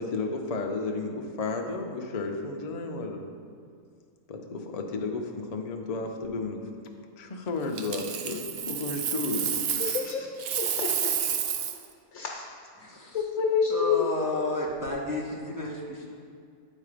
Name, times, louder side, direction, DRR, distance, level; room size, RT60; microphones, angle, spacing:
voice 1, 0.0-3.3 4.3-6.7 7.2-9.7, left 3 dB, 85° left, 2 dB, 0.3 m, -33 dB
Coin (dropping), 7.8-10.1 10.4-11.9 14.7-14.9, right 8 dB, 80° right, 0.5 m, -30 dB
voice 2, 9.7-10.3 10.6-11.1 12.1-12.4 13.1-14.0, left 7 dB, 70° left, -1 dB, 1.1 m, -28 dB
voice 3, 12.8-13.2 13.7-16.1, left 1 dB, 25° right, -4 dB, 0.4 m, -32 dB
8.4 x 4.2 x 5.0 m, 2.2 s
omnidirectional pair, 1.6 m